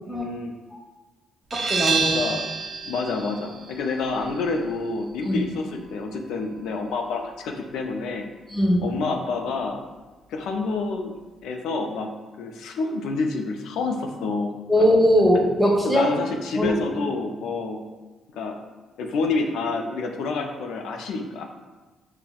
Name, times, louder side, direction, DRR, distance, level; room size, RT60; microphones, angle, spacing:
voice 1, 0.1-0.6 2.1-2.4 2.8-8.3 8.8-9.8 10.3-12.1 12.4-14.5 15.8-17.8 18.3-18.6 19.0-21.4, left 3 dB, 80° left, 3 dB, 0.3 m, -28 dB
voice 2, 1.5-2.2 5.2-5.4 8.5-8.9 14.7-16.1 16.5-16.7, equal, 10° right, -2 dB, 0.9 m, -20 dB
sound 1, 1.5-6.9, right 4 dB, 50° right, 0.5 m, -30 dB
5.5 x 2.0 x 2.3 m, 1.2 s
cardioid pair, 90°, 0 cm